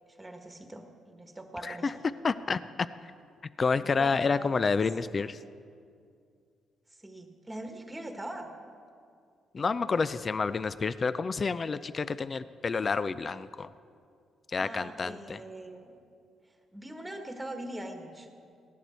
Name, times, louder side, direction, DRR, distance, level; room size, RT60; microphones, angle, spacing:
voice 1, 0.1-2.0 3.7-4.6 7.0-8.5 14.6-16.0 16.7-18.3, right 1 dB, 10° right, 4 dB, 1.5 m, -42 dB
voice 2, 2.2-2.6 3.6-5.4 9.5-13.7 14.5-15.4, left 4 dB, 35° left, 14 dB, 0.4 m, -29 dB
17.0 x 11.0 x 4.4 m, 2.3 s
cardioid pair, 90°, 0 cm